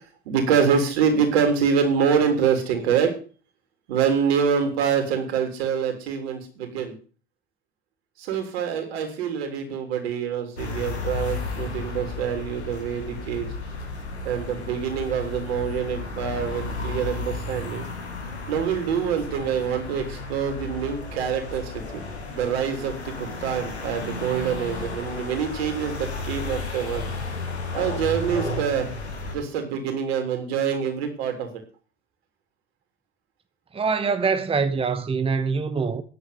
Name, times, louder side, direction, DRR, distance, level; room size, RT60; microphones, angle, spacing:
voice 1, 0.3-3.1 3.9-7.0 8.2-13.5 14.2-17.8 18.5-22.0 22.3-27.0 27.7-28.9 29.3-31.5, right 7 dB, 70° right, 3.5 m, -25 dB
sound 1, 10.6-29.4, left 3 dB, 85° left, 2.4 m, -33 dB
voice 2, 33.7-36.0, right 5 dB, 15° right, 1.0 m, -24 dB
10.0 x 7.9 x 8.3 m
figure-of-eight pair, 65°, 32 cm